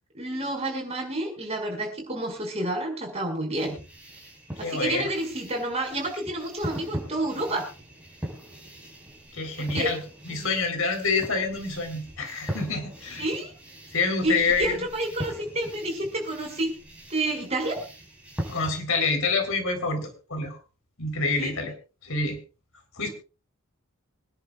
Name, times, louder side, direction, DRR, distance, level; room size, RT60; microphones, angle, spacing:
voice 1, 0.1-3.8 4.6-7.7 9.6-9.9 10.3-10.5 13.2-13.5 14.2-16.7 17.1-17.9 21.4-21.6, right 1 dB, 30° right, 2 dB, 5.6 m, -29 dB
sound 1, 3.5-18.8, right 1 dB, 5° right, 5.3 m, -40 dB
voice 2, 4.6-5.1 9.3-10.0 10.3-13.3 13.9-14.8 18.5-20.6 21.0-21.7 22.0-22.4 23.0-23.1, left 4 dB, 80° left, 5 dB, 3.8 m, -27 dB
25.5 x 11.0 x 2.4 m, 0.34 s
head